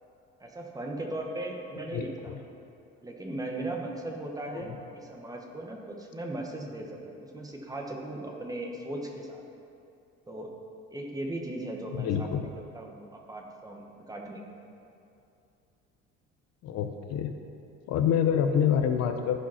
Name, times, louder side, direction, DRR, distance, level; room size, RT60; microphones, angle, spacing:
voice 1, 0.4-2.4 3.0-9.4 10.3-10.5 10.9-12.5 12.7-14.4, right 1 dB, 10° right, 1 dB, 1.2 m, -38 dB
voice 2, 1.9-2.4 4.5-4.8 11.9-12.5 16.6-17.4 17.9-19.4, left 8 dB, 60° left, 7 dB, 0.7 m, -27 dB
15.0 x 5.4 x 5.7 m, 2.6 s
cardioid pair, 140°, 29 cm